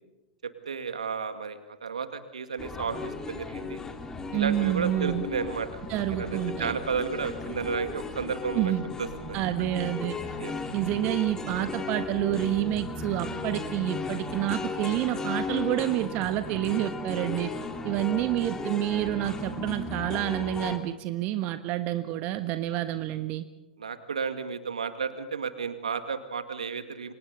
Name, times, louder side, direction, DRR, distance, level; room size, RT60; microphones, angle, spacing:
voice 1, 0.4-3.8 4.3-5.8 6.2-8.7 9.0-9.5 10.4-10.5 23.8-27.1, right 6 dB, 75° right, 9 dB, 2.2 m, -33 dB
sound 1, 2.6-20.8, left 3 dB, 15° left, 2.8 m, -36 dB
voice 2, 4.3-5.2 5.9-6.7 8.5-8.9 9.3-10.1 10.7-17.5 17.8-23.4, right 14 dB, 40° right, 10 dB, 1.3 m, -28 dB
30.0 x 25.5 x 4.1 m, 1.0 s
figure-of-eight pair, 95°, 4 cm